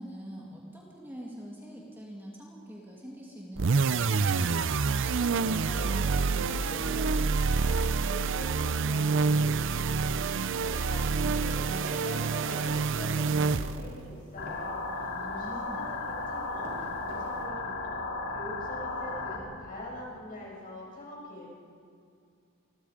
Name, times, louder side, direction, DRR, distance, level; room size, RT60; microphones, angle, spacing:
voice 1, 0.0-4.6 15.1-15.9, equal, 10° right, -3 dB, 2.6 m, -44 dB
sound 1, 3.6-14.0, right 4 dB, 60° right, 0.6 m, -27 dB
voice 2, 5.2-18.0 18.3-21.5, left 1 dB, 40° left, -4 dB, 7.4 m, -44 dB
sound 2, 9.9-17.4, right 1 dB, 80° right, 6.5 m, -47 dB
sound 3, 14.4-19.4, left 3 dB, 60° left, 2.7 m, -35 dB
27.5 x 22.0 x 5.2 m, 2.3 s
head